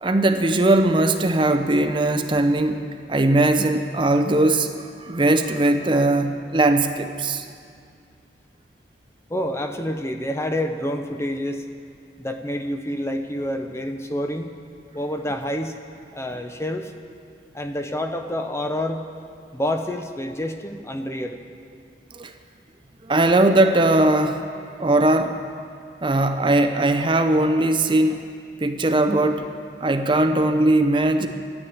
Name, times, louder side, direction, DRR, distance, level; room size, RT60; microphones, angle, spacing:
voice 1, 0.0-2.8 3.1-4.7 5.0-7.5 22.1-22.3 23.0-24.5 24.8-25.4 26.0-28.3 28.6-29.5 29.8-31.3, right 2 dB, 30° right, 7 dB, 0.6 m, -19 dB
voice 2, 9.3-11.6 12.2-14.5 14.9-15.8 16.1-16.9 17.5-19.0 19.5-21.4, left 1 dB, 15° left, 6 dB, 0.6 m, -28 dB
12.5 x 9.8 x 8.7 m, 2.3 s
head